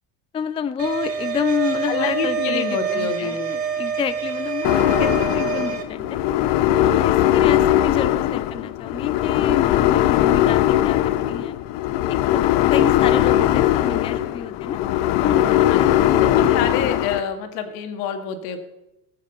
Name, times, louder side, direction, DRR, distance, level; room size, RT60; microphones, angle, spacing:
voice 1, 0.3-6.1 6.8-11.6 12.1-14.8 15.2-17.0, left 7 dB, 15° left, 13 dB, 0.4 m, -29 dB
sound 1, 0.8-5.8, right 7 dB, 30° right, 2.1 m, -26 dB
voice 2, 1.9-3.5 15.7-18.6, left 7 dB, 85° left, 6 dB, 2.3 m, -27 dB
sound 2, 4.6-17.2, left 13 dB, 60° left, 0.9 m, -19 dB
19.5 x 8.3 x 5.4 m, 0.93 s
cardioid pair, 125°, 47 cm